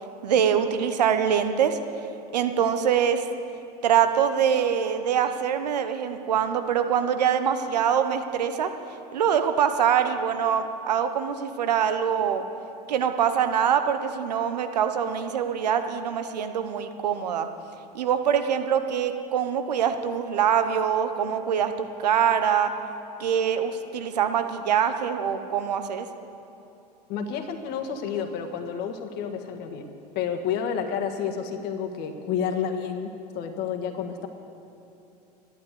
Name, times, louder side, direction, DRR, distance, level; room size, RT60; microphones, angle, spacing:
voice 1, 0.2-1.8 2.3-3.2 3.8-8.7 9.1-12.4 12.9-17.5 17.9-22.7 23.2-26.1, right 8 dB, 80° right, 9 dB, 1.0 m, -24 dB
voice 2, 27.1-29.9 30.1-34.3, left 7 dB, 55° left, 5 dB, 1.5 m, -30 dB
12.5 x 11.5 x 8.0 m, 2.9 s
hypercardioid pair, 80°, 21 cm